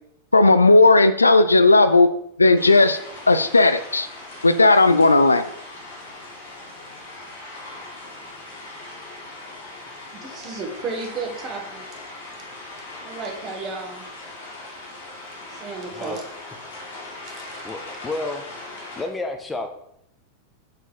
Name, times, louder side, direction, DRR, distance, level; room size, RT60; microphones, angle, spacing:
voice 1, 0.3-2.1 2.4-3.0 3.3-4.1 4.4-5.5, left 2 dB, 80° left, 11 dB, 0.3 m, -15 dB
sound 1, 2.5-19.0, left 2 dB, 60° left, 1.9 m, -39 dB
voice 2, 10.1-11.9 13.0-14.0 15.5-16.2 17.3-17.6, right 4 dB, 30° right, 2 dB, 1.4 m, -33 dB
voice 3, 17.6-18.4 19.0-19.7, left 2 dB, 10° left, 5 dB, 0.6 m, -30 dB
6.1 x 3.9 x 4.3 m, 0.73 s
figure-of-eight pair, 90°, 0 cm